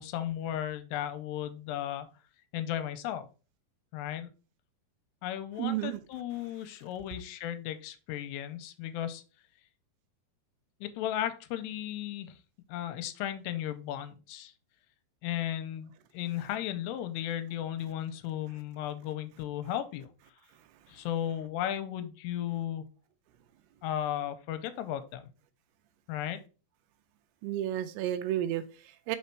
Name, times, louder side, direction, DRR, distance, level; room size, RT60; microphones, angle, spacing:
voice 1, 0.0-2.1 2.5-3.3 3.9-4.3 5.2-9.2 10.8-12.4 12.7-14.5 15.2-20.1 20.9-22.9 23.8-25.3 26.1-26.4, left 11 dB, 85° left, 10 dB, 2.8 m, -35 dB
voice 2, 5.6-6.0 27.4-29.2, right 12 dB, 85° right, 10 dB, 2.4 m, -32 dB
5.6 x 4.2 x 4.5 m, 0.34 s
omnidirectional pair, 4.8 m